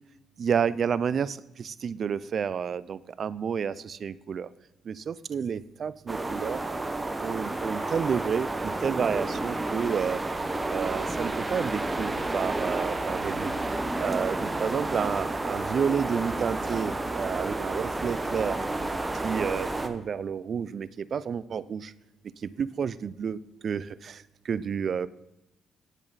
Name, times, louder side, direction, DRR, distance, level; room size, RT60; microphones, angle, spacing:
voice 1, 0.4-4.5 4.9-6.6 7.2-10.2 10.7-13.5 14.0-18.6 19.2-21.9 22.4-23.4 23.6-25.1, right 7 dB, 50° right, 18 dB, 0.4 m, -30 dB
sound 1, 6.1-19.9, right 2 dB, 15° right, 0.8 m, -31 dB
10.0 x 7.3 x 4.0 m, 0.90 s
cardioid pair, 90°, 0 cm